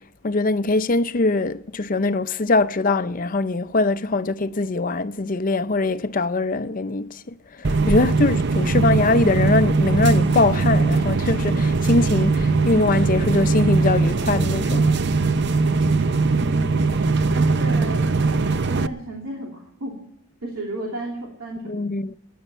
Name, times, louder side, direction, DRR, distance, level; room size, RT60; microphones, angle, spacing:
voice 1, 0.2-7.2 7.6-14.9 21.7-22.1, left 3 dB, 40° left, 0.5 m, -22 dB
sound 1, 7.6-18.9, right 3 dB, 50° right, 0.6 m, -20 dB
voice 2, 15.6-17.0 17.3-18.1 18.7-20.0 20.4-21.9, right 1 dB, 90° right, 2.9 m, -33 dB
25.0 x 10.5 x 4.4 m
head